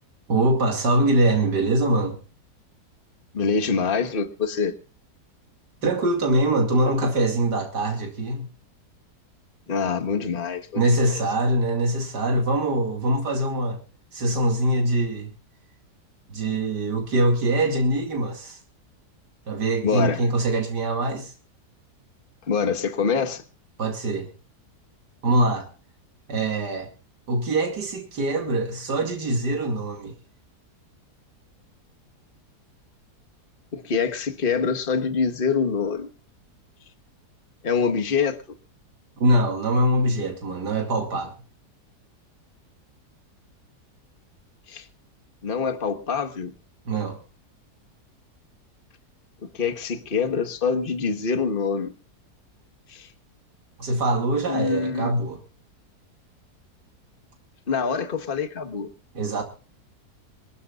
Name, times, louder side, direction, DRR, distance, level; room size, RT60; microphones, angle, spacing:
voice 1, 0.3-2.2 5.8-8.5 10.8-13.8 14.1-15.3 16.3-18.6 19.5-21.3 23.8-24.3 25.2-25.7 26.3-26.9 27.3-30.1 39.2-41.3 46.9-47.2 53.8-55.4 59.1-59.4, right 1 dB, 90° right, 2.9 m, -23 dB
voice 2, 3.3-4.7 9.7-10.8 19.8-20.2 22.5-23.4 33.7-36.1 37.6-38.4 44.7-44.9 45.4-46.5 49.5-51.9 52.9-53.1 54.5-55.1 57.7-58.9, left 5 dB, 35° left, 1.5 m, -25 dB
26.5 x 12.5 x 2.5 m
omnidirectional pair, 1.7 m